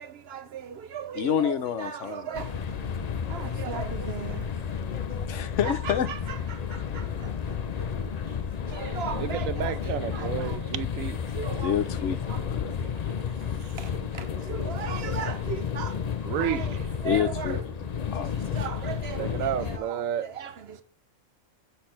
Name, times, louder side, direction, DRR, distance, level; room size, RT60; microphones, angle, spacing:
voice 1, 0.0-4.8 5.1-5.2 5.8-6.2 6.5-8.1 8.7-10.7 11.3-11.8 12.3-13.0 13.6-16.7 17.0-17.6 18.2-20.8, right 7 dB, 60° right, 0.9 m, -38 dB
voice 2, 1.1-2.4 5.3-6.1 6.7-6.8 8.7-9.0 11.6-12.8 17.0-18.8, left 9 dB, 70° left, 1.0 m, -29 dB
sound 1, 2.3-19.8, left 7 dB, 50° left, 0.5 m, -32 dB
voice 3, 9.1-11.2 16.2-16.8 19.2-20.3, right 10 dB, 90° right, 1.0 m, -31 dB
8.5 x 3.2 x 5.7 m
omnidirectional pair, 1.4 m